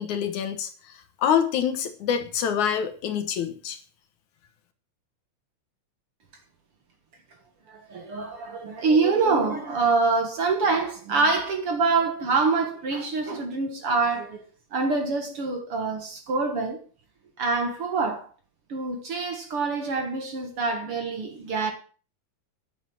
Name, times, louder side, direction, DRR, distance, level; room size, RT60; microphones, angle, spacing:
voice 1, 0.0-3.8, left 8 dB, 70° left, 2.6 m, -26 dB
voice 2, 7.7-14.4 14.7-16.8 17.4-18.3 18.7-21.7, right 4 dB, 50° right, 2.1 m, -25 dB
10.5 x 7.9 x 7.0 m
omnidirectional pair, 3.7 m